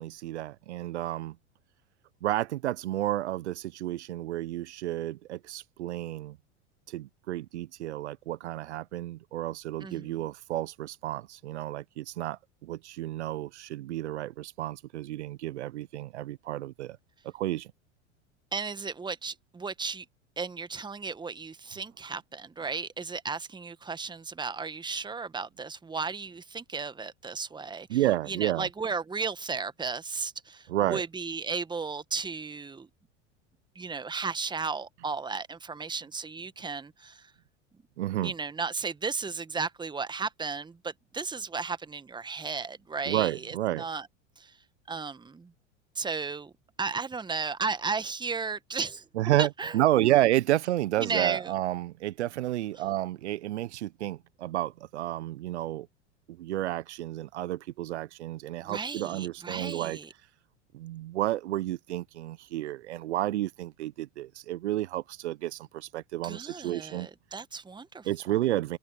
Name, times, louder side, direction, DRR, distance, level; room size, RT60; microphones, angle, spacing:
voice 1, 0.0-1.4 2.2-6.4 6.9-17.0 17.3-17.7 27.9-28.7 30.7-31.0 38.0-38.3 43.1-43.8 49.1-55.9 56.3-60.0 60.7-67.1 68.0-68.8, right 14 dB, 65° right, 1.3 m, -31 dB
voice 2, 9.8-10.3 18.5-20.0 20.4-32.9 33.7-37.3 38.2-44.1 44.4-44.6 44.9-45.5 45.9-46.5 46.8-49.0 49.4-50.1 51.0-51.5 58.6-60.1 66.2-68.1, right 4 dB, 10° right, 1.6 m, -34 dB
figure-of-eight pair, 85°, 36 cm